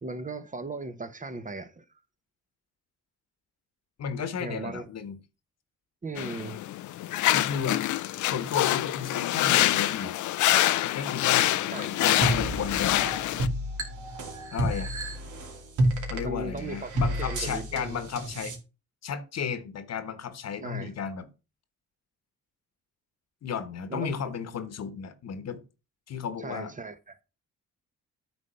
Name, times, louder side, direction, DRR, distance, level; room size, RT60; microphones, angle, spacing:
voice 1, 0.0-1.8 4.4-4.9 6.0-6.6 11.7-12.4 16.2-16.9 17.2-18.0 20.6-20.9 23.9-24.1 26.4-27.2, right 3 dB, 25° right, 1.0 m, -37 dB
voice 2, 4.0-5.2 7.2-7.8 8.3-10.1 10.8-13.0 14.5-14.9 16.1-18.5 19.0-21.3 23.4-25.6 26.1-26.7, left 7 dB, 60° left, 1.3 m, -34 dB
sound 1, 6.2-13.5, left 14 dB, 75° left, 0.6 m, -26 dB
sound 2, 12.2-18.6, right 1 dB, 75° right, 2.2 m, -30 dB
9.1 x 4.0 x 5.7 m
cardioid pair, 90°, 30 cm